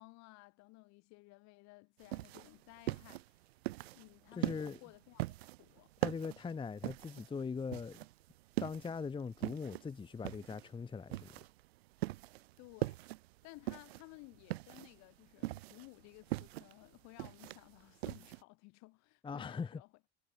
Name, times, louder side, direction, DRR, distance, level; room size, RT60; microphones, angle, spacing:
voice 1, 0.0-3.5 3.9-5.9 12.6-13.0 13.4-19.9, left 25 dB, 50° left, 2.6 m, -57 dB
sound 1, 2.0-18.4, right 18 dB, 60° right, 0.5 m, -41 dB
voice 2, 4.4-4.8 6.0-8.0 8.6-11.3 19.2-19.8, left 5 dB, 15° left, 0.9 m, -41 dB
figure-of-eight pair, 70°, 35 cm